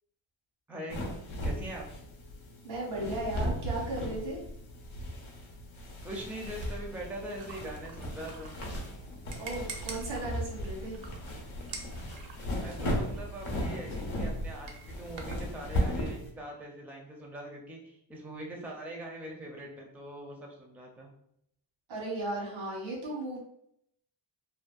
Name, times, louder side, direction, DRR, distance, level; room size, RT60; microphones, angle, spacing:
voice 1, 0.7-1.0 1.4-1.9 6.0-8.6 12.6-21.1, right 1 dB, 5° right, 0 dB, 0.4 m, -42 dB
untitled bedsheets, 0.9-16.3, equal, 85° left, 0.7 m, -36 dB
voice 2, 2.6-4.4 9.4-11.0 21.9-23.4, right 1 dB, 90° right, -4 dB, 1.2 m, -36 dB
sound 1, 6.5-15.5, right 2 dB, 65° right, 0.5 m, -46 dB
2.6 x 2.1 x 2.3 m, 0.74 s
wide cardioid pair, 105°, 46 cm